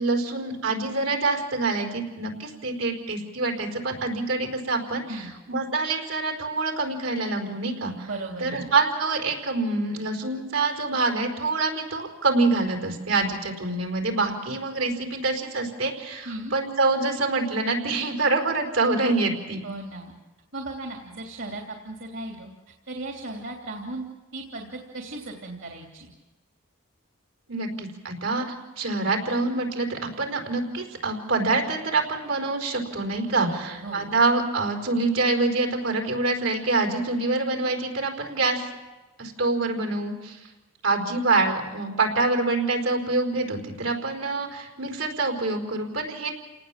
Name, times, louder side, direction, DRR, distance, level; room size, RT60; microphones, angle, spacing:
voice 1, 0.0-5.2 5.5-8.1 8.4-19.6 27.5-38.6 39.2-40.4 40.8-46.3, right 3 dB, 85° right, 3 dB, 4.8 m, -26 dB
voice 2, 8.0-8.7 16.2-16.5 19.6-20.1 20.5-22.5 22.9-24.0 24.3-26.1 33.2-34.1, right 2 dB, 70° right, 1 dB, 3.0 m, -36 dB
29.5 x 19.0 x 7.5 m, 1.2 s
head